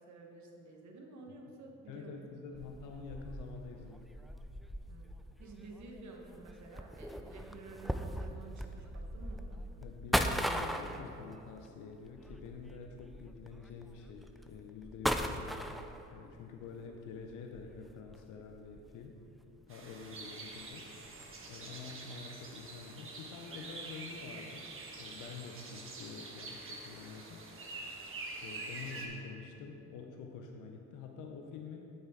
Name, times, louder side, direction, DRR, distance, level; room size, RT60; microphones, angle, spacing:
voice 1, 0.0-2.7 4.9-5.1 5.4-9.6, right 3 dB, 65° right, 1 dB, 1.4 m, -51 dB
voice 2, 1.9-4.1 9.8-15.6 16.1-19.2 19.7-20.9 21.4-27.5 28.4-31.9, left 5 dB, 90° left, 3 dB, 0.7 m, -47 dB
sound 1, 2.5-16.3 16.9-19.4 19.7-19.8 20.4-20.7 21.0-21.4, equal, ahead, 0.4 m, -39 dB
sound 2, 19.7-29.1, right 3 dB, 45° right, 1.4 m, -46 dB
8.8 x 8.4 x 3.7 m, 2.9 s
cardioid pair, 90°, 30 cm